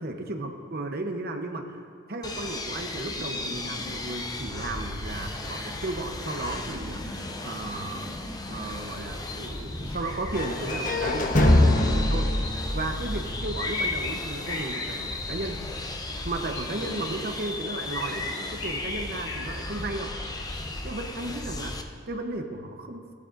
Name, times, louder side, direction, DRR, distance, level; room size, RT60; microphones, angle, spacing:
voice 1, 0.0-8.1 8.5-15.6 16.2-20.1 20.8-23.1, right 2 dB, 50° right, 5 dB, 0.9 m, -35 dB
sound 1, 2.2-21.8, left 2 dB, 20° left, 0.6 m, -36 dB
sound 2, 9.3-11.0 12.4-12.8 13.6-14.2 14.4-15.8 16.5-17.1 17.9-19.6 20.2-20.6, left 3 dB, 80° left, 1.6 m, -35 dB
sound 3, 10.3-14.3, left 1 dB, 45° left, 1.1 m, -24 dB
16.0 x 12.0 x 2.6 m, 2.1 s
head